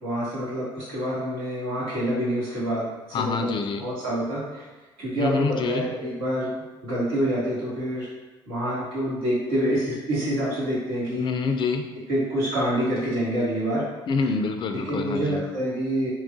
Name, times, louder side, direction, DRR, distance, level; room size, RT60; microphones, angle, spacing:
voice 1, 0.0-3.5 3.8-4.6 5.0-6.5 6.8-8.1 8.5-11.3 12.1-13.9 14.7-16.1, equal, 80° right, -7 dB, 1.0 m, -27 dB
voice 2, 3.1-3.8 5.2-5.9 11.1-11.8 14.1-15.4, left 4 dB, 40° left, 6 dB, 0.3 m, -26 dB
3.0 x 2.3 x 2.5 m, 1.2 s
hypercardioid pair, 55°, 13 cm